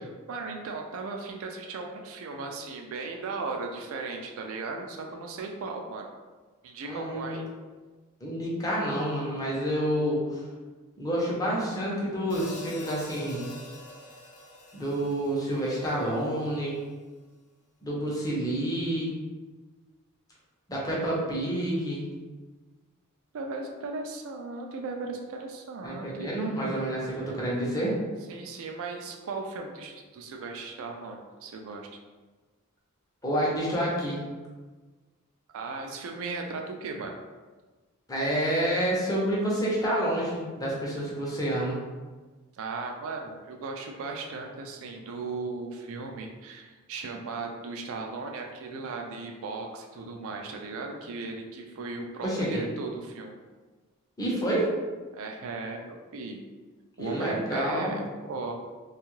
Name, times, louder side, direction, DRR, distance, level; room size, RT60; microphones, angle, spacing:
voice 1, 0.3-6.1 6.6-7.4 23.3-26.3 28.3-31.9 35.5-37.1 42.5-53.3 55.1-56.4 57.0-58.5, right 3 dB, 65° right, 2 dB, 0.4 m, -37 dB
voice 2, 6.8-7.4 8.2-10.4 11.0-13.5 14.7-16.8 17.8-19.2 20.7-22.0 25.8-27.9 33.2-34.2 38.1-41.8 52.2-52.6 54.2-54.7 57.0-58.0, right 1 dB, 15° left, -5 dB, 0.7 m, -28 dB
Hi-hat, 12.3-16.6, left 2 dB, 85° left, 0.6 m, -46 dB
2.6 x 2.3 x 3.0 m, 1.3 s
head